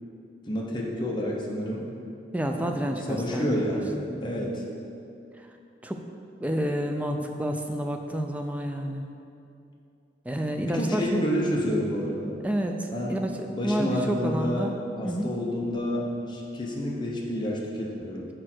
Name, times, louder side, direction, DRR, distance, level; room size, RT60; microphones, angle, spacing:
voice 1, 0.5-1.8 2.6-4.6 10.6-12.4 12.9-13.2 13.5-18.3, equal, 25° left, -3 dB, 0.9 m, -29 dB
voice 2, 2.3-3.8 4.1-4.5 5.8-6.0 6.4-9.0 10.3-11.3 12.4-13.3 13.6-14.7 15.0-15.3, equal, 10° right, 4 dB, 0.4 m, -29 dB
6.4 x 5.0 x 4.5 m, 2.6 s
head